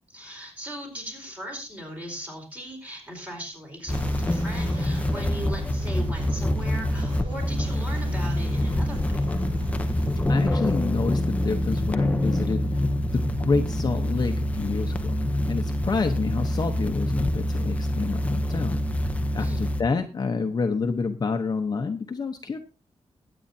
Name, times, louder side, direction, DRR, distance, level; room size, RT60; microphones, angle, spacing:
voice 1, 0.1-9.3 19.4-19.6, equal, 15° right, 0 dB, 4.5 m, -39 dB
sound 1, 3.8-15.1, right 2 dB, 45° right, 1.7 m, -42 dB
sound 2, 3.9-19.8, left 1 dB, 15° left, 0.8 m, -26 dB
voice 2, 10.3-12.8 13.1-18.8 19.3-22.6, left 4 dB, 40° left, 5 dB, 0.9 m, -28 dB
21.5 x 8.7 x 2.7 m, 0.30 s
wide cardioid pair, 165°, 11 cm